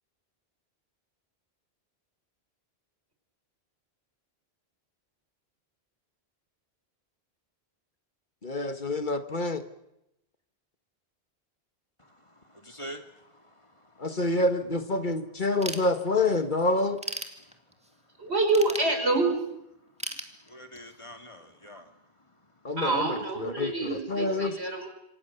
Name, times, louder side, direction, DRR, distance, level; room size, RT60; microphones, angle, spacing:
voice 1, 8.4-9.6 14.0-17.0 22.6-24.5, left 2 dB, 50° left, 1.7 m, -27 dB
voice 2, 12.3-13.4 20.5-21.9, equal, 30° left, 2.3 m, -45 dB
Ratchet pawl / Tools, 15.6-16.4 16.8-17.9 18.5-19.5 20.0-21.0, right 1 dB, 5° right, 2.3 m, -37 dB
voice 3, 18.2-19.4 22.8-24.9, right 3 dB, 75° right, 5.5 m, -26 dB
27.5 x 25.5 x 7.0 m
omnidirectional pair, 1.1 m